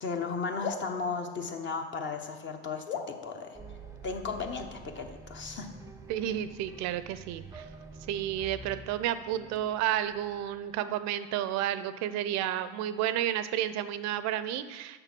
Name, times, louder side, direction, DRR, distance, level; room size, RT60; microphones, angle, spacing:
voice 1, 0.0-3.6 4.0-5.7, left 4 dB, 35° left, 5 dB, 0.9 m, -35 dB
sound 1, 0.6-2.3 2.9-4.6, left 7 dB, 70° left, 1.1 m, -41 dB
sound 2, 3.5-10.8, right 4 dB, 10° right, 0.6 m, -48 dB
voice 2, 6.1-7.7 8.1-15.0, right 11 dB, 50° right, 13 dB, 0.6 m, -31 dB
6.8 x 5.7 x 6.0 m, 1.3 s
hypercardioid pair, 90°, 35 cm